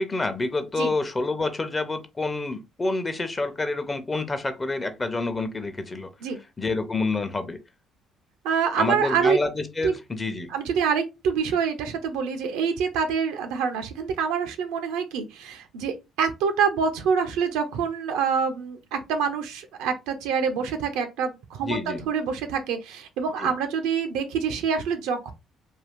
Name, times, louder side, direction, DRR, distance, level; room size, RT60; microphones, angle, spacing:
voice 1, 0.0-6.1 6.6-7.6 8.8-10.5 21.6-22.0 23.4-23.5, left 3 dB, 25° left, 0.8 m, -28 dB
voice 2, 8.4-9.4 9.8-9.9 10.5-25.3, right 6 dB, 80° right, 0.6 m, -26 dB
2.7 x 2.4 x 3.5 m
hypercardioid pair, 55°, 0 cm